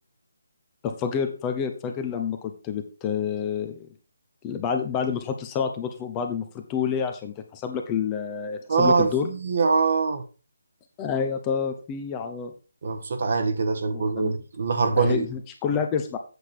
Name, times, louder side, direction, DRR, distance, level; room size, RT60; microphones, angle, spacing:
voice 1, 0.8-3.9 4.4-9.3 11.0-12.5 13.9-14.4 15.0-16.2, left 7 dB, 15° left, 5 dB, 1.0 m, -28 dB
voice 2, 8.7-10.2 12.8-15.3, right 4 dB, 55° right, 7 dB, 1.4 m, -23 dB
8.2 x 6.5 x 4.6 m, 0.33 s
figure-of-eight pair, 160°, 0 cm